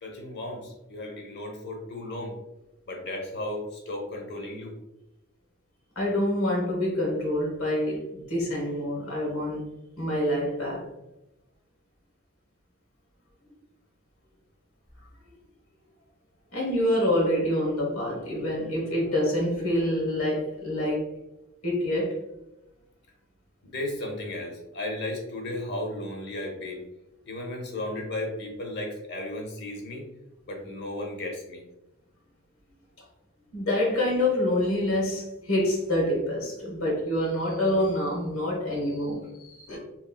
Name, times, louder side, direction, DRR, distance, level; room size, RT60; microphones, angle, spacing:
voice 1, 0.0-2.3 2.9-4.7 23.6-26.8 27.2-30.1 30.5-31.6, left 1 dB, 50° left, 1 dB, 0.8 m, -35 dB
voice 2, 5.9-9.7 10.0-10.9 16.5-21.1 21.6-22.2 33.5-39.8, left 1 dB, 90° left, -2 dB, 1.2 m, -26 dB
3.0 x 3.0 x 2.2 m, 0.92 s
head